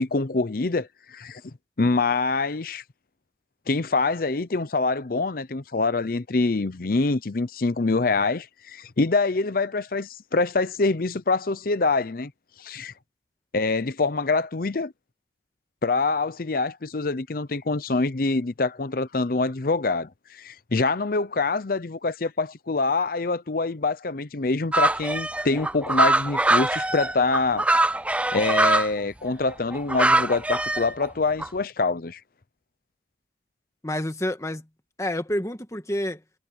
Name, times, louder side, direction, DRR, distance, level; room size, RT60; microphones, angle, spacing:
voice 1, 0.0-1.4 1.8-2.8 3.7-12.3 12.6-12.9 13.5-14.9 15.8-27.7 28.3-32.2, left 3 dB, 50° left, 0.7 m, -25 dB
sound 1, 24.7-28.9 29.5-31.1 31.4-31.5, right 2 dB, 5° right, 0.5 m, -22 dB
voice 2, 33.8-34.6 35.0-36.2, left 1 dB, 15° left, 1.6 m, -28 dB
head